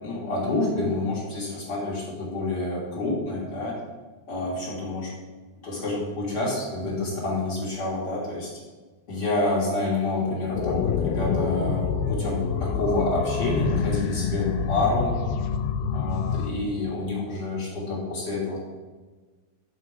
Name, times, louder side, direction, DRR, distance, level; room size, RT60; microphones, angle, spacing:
voice 1, 0.0-3.8 4.3-5.1 5.6-8.5 9.1-15.2 15.9-18.6, left 2 dB, 45° left, -5 dB, 1.4 m, -28 dB
sound 1, 10.5-16.5, left 6 dB, 80° left, 2.3 m, -27 dB
9.9 x 4.5 x 4.8 m, 1.3 s
omnidirectional pair, 4.5 m